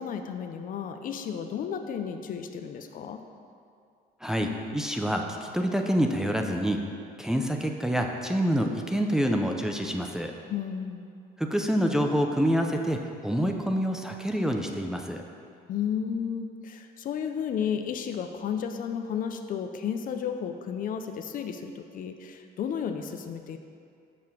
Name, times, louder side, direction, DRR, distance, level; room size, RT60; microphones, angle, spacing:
voice 1, 0.0-3.2 10.5-11.1 15.7-23.6, left 7 dB, 55° left, 6 dB, 0.6 m, -33 dB
voice 2, 4.2-6.8 7.2-10.3 11.4-15.2, equal, 5° right, 2 dB, 0.6 m, -27 dB
6.8 x 5.5 x 6.1 m, 2.4 s
cardioid pair, 110°, 17 cm